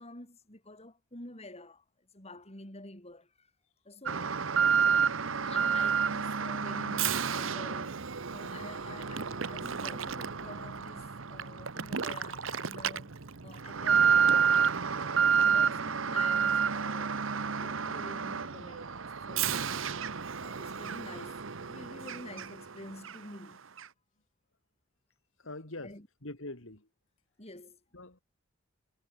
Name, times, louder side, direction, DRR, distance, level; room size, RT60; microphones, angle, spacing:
voice 1, 0.0-3.5 3.8-4.4 5.3-8.0 8.3-13.1 13.4-19.9 20.4-23.6 25.8-26.1 27.4-27.8, left 2 dB, 30° left, 7.8 m, -49 dB
Alarm, 4.1-22.7 23.0-23.2 23.8-23.9, right 6 dB, 75° right, 1.1 m, -30 dB
voice 2, 25.4-26.0 26.2-26.9 27.9-28.2, left 2 dB, 70° left, 3.5 m, -43 dB
head